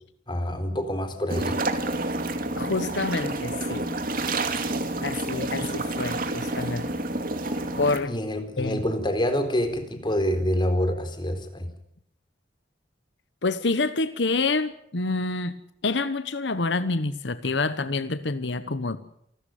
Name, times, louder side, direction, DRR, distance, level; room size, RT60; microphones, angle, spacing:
voice 1, 0.3-1.6 8.0-11.7, equal, 25° left, 7 dB, 4.0 m, -26 dB
sound 1, 1.3-8.0, right 2 dB, 50° right, 2.6 m, -29 dB
voice 2, 2.6-3.8 5.0-6.9 7.8-8.1 8.6-8.8 13.4-15.5 15.8-19.0, left 3 dB, 70° left, 12 dB, 1.1 m, -27 dB
28.0 x 13.0 x 9.3 m, 0.72 s
head